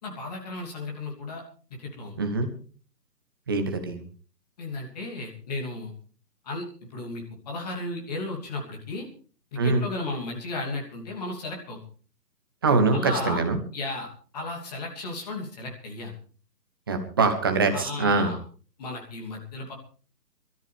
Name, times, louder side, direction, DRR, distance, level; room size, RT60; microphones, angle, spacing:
voice 1, 0.0-1.4 1.8-2.2 4.6-5.9 6.4-9.1 9.5-11.8 12.9-13.4 13.7-16.1 17.7-18.4 18.8-19.7, left 2 dB, 25° left, 0 dB, 3.0 m, -34 dB
voice 2, 2.2-2.5 3.5-4.0 9.6-9.8 12.6-13.6 16.9-18.3, right 3 dB, 15° right, 6 dB, 1.0 m, -23 dB
23.5 x 13.5 x 3.5 m, 0.40 s
figure-of-eight pair, 145°, 49 cm